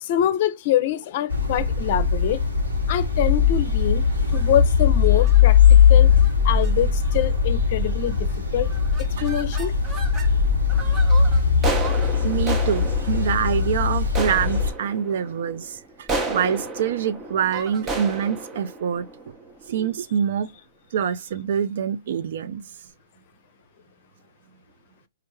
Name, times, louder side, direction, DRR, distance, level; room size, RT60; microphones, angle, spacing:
voice 1, 0.0-2.4 2.9-4.1 4.3-5.6 5.9-6.1 6.4-8.7 9.0-9.7, left 11 dB, 50° left, 0.5 m, -24 dB
sound 1, 1.3-14.7, left 6 dB, 85° right, 1.2 m, -19 dB
sound 2, 4.2-4.6 5.2-5.4 6.1-6.3 6.6-6.7 7.0-7.4 8.0-8.3 8.6-10.3 10.7-19.9, right 2 dB, 20° right, 0.8 m, -33 dB
voice 2, 12.2-19.4 19.7-20.5 20.9-22.7, right 8 dB, 60° right, 0.4 m, -25 dB
4.3 x 2.4 x 3.1 m
hypercardioid pair, 115°, 0 cm